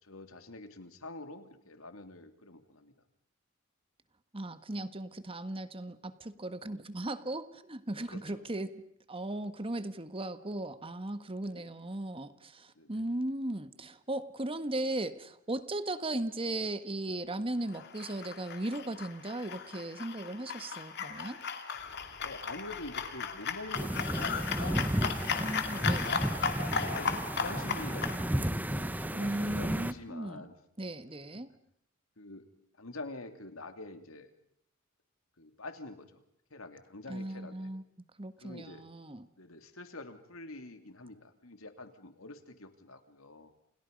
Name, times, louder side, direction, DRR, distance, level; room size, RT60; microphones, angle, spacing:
voice 1, 0.0-2.9 8.0-8.5 11.4-11.7 12.8-13.0 22.2-25.0 25.7-26.1 26.6-30.5 32.2-32.5 32.8-34.3 35.4-36.2 36.5-37.7 38.4-38.9 39.4-43.5, left 2 dB, 85° left, 7 dB, 2.9 m, -46 dB
voice 2, 4.3-8.8 9.1-21.4 25.3-26.1 29.2-30.5 30.8-31.5 37.1-37.8 38.2-39.3, right 1 dB, 25° right, 11 dB, 1.5 m, -37 dB
sound 1, 17.7-28.2, left 6 dB, 55° left, 2.5 m, -36 dB
sound 2, 21.7-29.9, equal, 35° left, 4.4 m, -55 dB
sound 3, 23.7-29.9, right 1 dB, 10° right, 1.0 m, -33 dB
29.5 x 29.5 x 5.4 m, 0.68 s
head